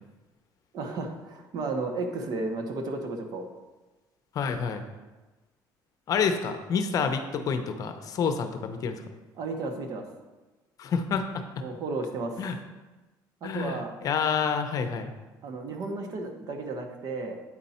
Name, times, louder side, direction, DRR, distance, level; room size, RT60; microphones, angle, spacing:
voice 1, 0.7-3.5 9.4-10.1 11.6-12.4 13.4-13.9 15.4-17.4, right 3 dB, 55° right, 5 dB, 1.0 m, -33 dB
voice 2, 4.3-4.8 6.1-9.0 10.8-11.4 12.4-12.6 13.4-15.1, left 6 dB, 45° left, 7 dB, 0.7 m, -28 dB
8.6 x 5.3 x 4.3 m, 1.2 s
cardioid pair, 130°, 8 cm